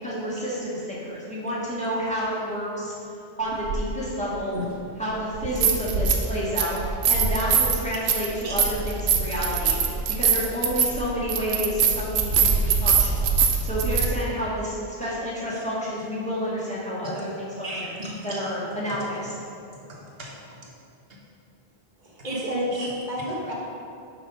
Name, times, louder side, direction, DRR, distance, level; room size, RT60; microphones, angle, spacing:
voice 1, 0.0-2.9 3.4-4.6 5.0-6.8 7.1-9.8 10.1-17.9 18.2-19.3, equal, 5° left, -8 dB, 1.7 m, -30 dB
sound 1, 3.7-3.8 5.3-6.3 6.6-14.1, right 6 dB, 90° right, 1.0 m, -22 dB
voice 2, 17.6-18.4 19.5-20.7 22.2-22.4 22.8-22.9, right 1 dB, 65° right, -2 dB, 1.4 m, -37 dB
voice 3, 22.0-23.5, equal, 45° right, -3 dB, 1.4 m, -30 dB
6.1 x 5.8 x 5.1 m, 2.6 s
omnidirectional pair, 1.1 m